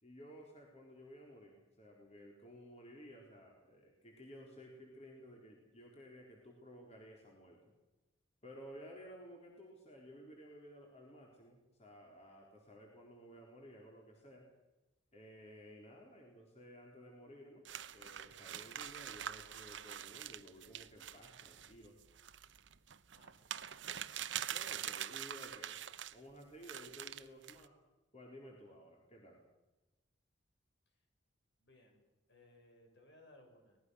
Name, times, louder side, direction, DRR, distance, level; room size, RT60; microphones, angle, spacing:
voice 1, 0.0-7.7 8.4-14.5 15.1-17.7 17.9-22.0 24.5-25.8 26.1-27.8 28.1-29.4, equal, 35° left, -1 dB, 4.2 m, -55 dB
sound 1, 17.7-26.2 26.6-27.7, right 10 dB, 70° right, 0.9 m, -45 dB
voice 2, 23.1-23.6 31.6-33.8, left 1 dB, 60° left, 3 dB, 6.9 m, -64 dB
24.5 x 19.5 x 6.6 m, 1.1 s
head